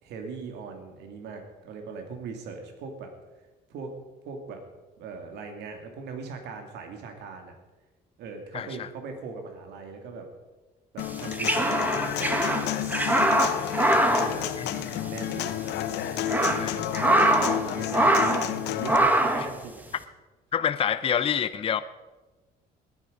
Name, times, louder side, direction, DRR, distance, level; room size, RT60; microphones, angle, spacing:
voice 1, 0.0-3.1 3.7-3.9 4.2-4.6 5.0-7.6 8.2-10.3 10.9-15.5 16.2-19.8, right 4 dB, 80° right, 4 dB, 2.6 m, -40 dB
voice 2, 8.5-8.9 14.6-14.7 16.6-16.8 20.5-21.8, left 8 dB, 35° left, 12 dB, 0.6 m, -27 dB
Human voice / Acoustic guitar, 11.0-19.0, left 12 dB, 85° left, 1.0 m, -31 dB
sound 1, 11.1-15.2 15.4-15.5 16.0-17.6 17.9-18.5 18.8-19.5, right 1 dB, 10° right, 1.7 m, -23 dB
19.5 x 9.9 x 5.2 m, 1.2 s
cardioid pair, 110°, 17 cm